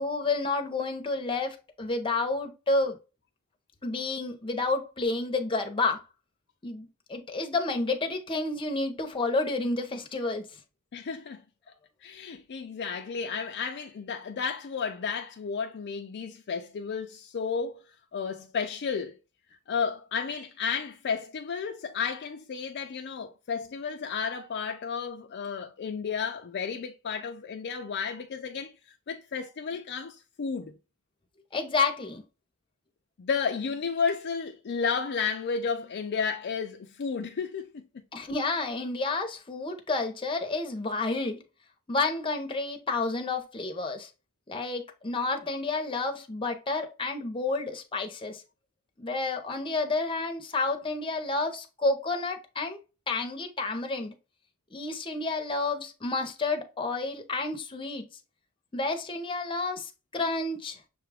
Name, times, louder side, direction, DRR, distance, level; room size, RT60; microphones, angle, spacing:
voice 1, 0.0-3.0 3.8-6.0 6.6-10.5 31.5-32.2 38.1-41.4 41.9-44.1 44.5-48.4 49.0-52.8 53.1-54.1 54.7-58.1 58.7-60.9, left 3 dB, 25° left, 0.7 m, -30 dB
voice 2, 10.9-11.4 12.0-17.8 18.1-19.2 19.7-28.7 29.1-30.7 33.2-37.8, left 6 dB, 50° left, 0.4 m, -32 dB
6.6 x 2.3 x 3.4 m
head